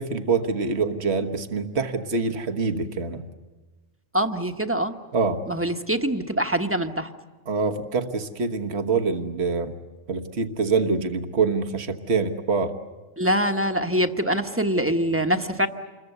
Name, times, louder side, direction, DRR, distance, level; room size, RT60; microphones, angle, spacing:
voice 1, 0.0-3.2 5.1-5.4 7.5-9.8 10.1-12.7, right 4 dB, 65° right, 6 dB, 1.6 m, -25 dB
voice 2, 4.1-5.0 5.5-7.1 13.2-15.7, equal, 10° right, 6 dB, 1.1 m, -24 dB
28.5 x 22.0 x 8.1 m, 1.2 s
omnidirectional pair, 1.2 m